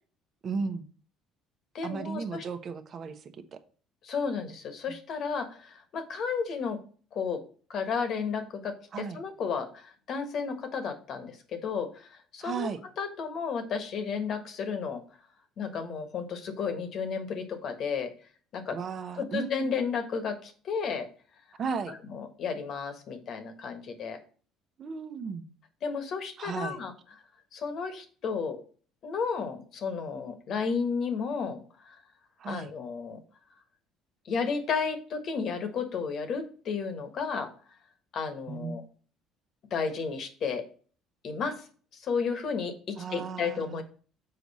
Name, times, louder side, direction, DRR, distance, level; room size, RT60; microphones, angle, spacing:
voice 1, 0.4-0.9 1.8-3.2 3.5-3.6 8.9-9.2 12.4-12.8 18.7-19.7 21.6-21.9 24.8-25.4 26.4-26.8 32.4-32.7 38.5-38.8 43.0-43.8, right 5 dB, 45° right, 9 dB, 0.9 m, -35 dB
voice 2, 1.7-2.4 4.0-6.8 7.1-7.4 7.7-12.7 13.0-15.0 15.6-18.1 18.5-18.8 19.2-21.1 21.9-24.2 25.8-26.9 27.5-28.6 29.0-31.9 32.5-33.2 34.2-37.5 38.1-38.8 39.7-40.6 41.2-41.7 41.9-43.8, left 5 dB, 55° left, 7 dB, 1.4 m, -33 dB
6.9 x 4.7 x 4.2 m, 0.42 s
supercardioid pair, 95°, 0 cm